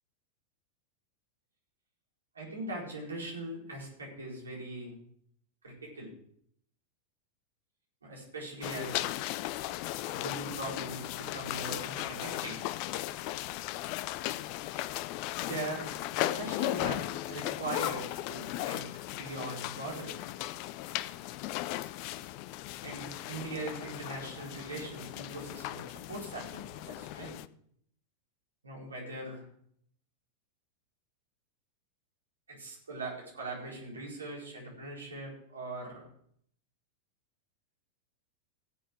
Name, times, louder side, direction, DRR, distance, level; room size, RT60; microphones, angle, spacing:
voice 1, 2.3-4.9 5.6-6.1 8.0-9.1 10.1-12.6 15.4-15.8 16.2-20.3 22.8-27.4 28.6-29.4 32.5-36.1, right 2 dB, 75° right, -2 dB, 4.7 m, -41 dB
sound 1, 8.6-27.5, left 15 dB, 45° left, 0.5 m, -37 dB
17.0 x 7.9 x 4.7 m, 0.66 s
figure-of-eight pair, 90°, 0 cm